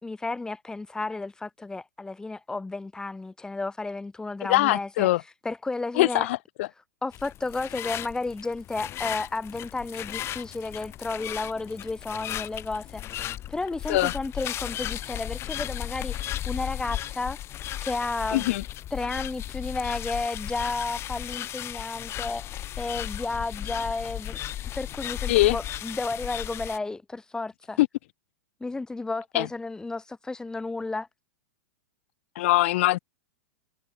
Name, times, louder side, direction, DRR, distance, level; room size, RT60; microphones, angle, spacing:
voice 1, 0.0-5.1 5.4-6.3 7.0-13.1 13.5-17.4 17.8-18.5 18.9-24.4 24.8-27.8 28.6-31.1, left 3 dB, 10° left, 2.3 m, -32 dB
voice 2, 4.5-5.2 6.0-6.7 13.9-14.1 18.3-18.6 25.3-25.6 27.8-27.9 29.3-29.5 32.4-33.0, left 18 dB, 55° left, 3.8 m, -22 dB
sound 1, 7.1-26.8, left 12 dB, 30° left, 4.5 m, -35 dB
hypercardioid pair, 105°, 8 cm